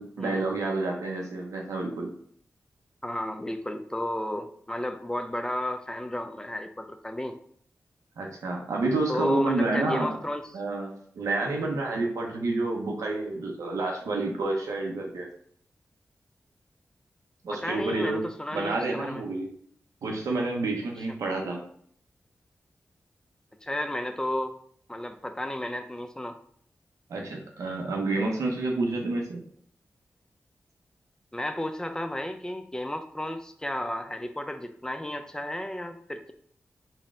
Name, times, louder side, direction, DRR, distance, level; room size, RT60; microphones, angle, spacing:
voice 1, 0.0-2.1 8.2-10.1 10.5-15.3 17.4-18.2 18.5-19.5 20.0-21.6 27.1-29.4, right 2 dB, 90° right, 0 dB, 0.6 m, -29 dB
voice 2, 3.0-7.4 9.1-10.5 17.5-19.2 23.6-24.6 24.9-26.4 31.3-36.3, left 1 dB, 10° left, 7 dB, 0.4 m, -33 dB
4.0 x 2.1 x 3.6 m, 0.62 s
cardioid pair, 45°, 5 cm